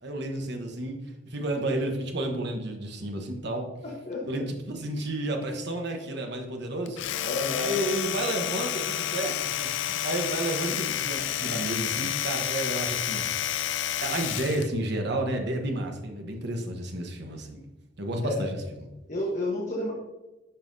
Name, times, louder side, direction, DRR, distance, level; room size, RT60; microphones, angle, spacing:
voice 1, 0.0-3.7 4.3-7.0 7.6-13.5 14.0-17.7 18.0-18.6, right 1 dB, 60° right, 3 dB, 1.1 m, -31 dB
voice 2, 3.8-4.4 7.2-7.8 18.2-18.4 19.1-19.9, left 2 dB, 40° left, -3 dB, 1.2 m, -31 dB
Domestic sounds home sounds, 6.9-14.7, left 11 dB, 65° left, 0.4 m, -30 dB
9.9 x 5.6 x 2.7 m, 1.0 s
head